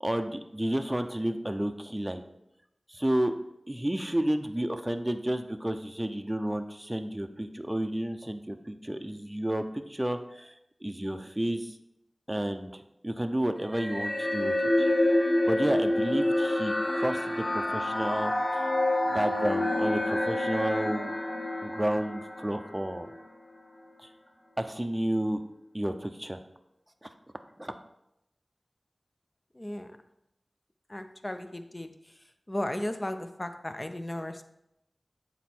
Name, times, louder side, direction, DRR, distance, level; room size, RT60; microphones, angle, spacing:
voice 1, 0.0-2.2 2.9-3.3 3.7-10.6 10.8-11.7 12.3-14.9 15.5-18.7 19.1-21.1 21.6-23.1 24.0-24.1 24.6-25.4 25.7-26.4 27.0-27.1 27.6-27.7, right 1 dB, 15° right, 7 dB, 0.6 m, -31 dB
sound 1, 13.7-23.2, left 1 dB, 50° left, 1.2 m, -28 dB
voice 2, 29.5-30.0 30.9-32.2 32.5-34.4, left 1 dB, 30° left, 8 dB, 0.6 m, -35 dB
8.1 x 4.1 x 4.4 m, 0.84 s
wide cardioid pair, 60°, 0 cm